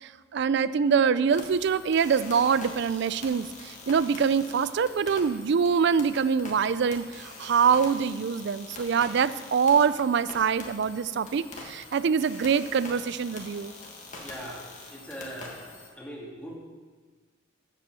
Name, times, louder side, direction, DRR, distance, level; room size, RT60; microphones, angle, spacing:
voice 1, 0.0-13.7, right 6 dB, 55° right, 16 dB, 0.3 m, -24 dB
sound 1, 1.3-15.9, left 2 dB, 35° left, 1.5 m, -44 dB
voice 2, 14.2-16.6, equal, 5° left, -3 dB, 1.7 m, -41 dB
8.2 x 7.5 x 6.8 m, 1.4 s
head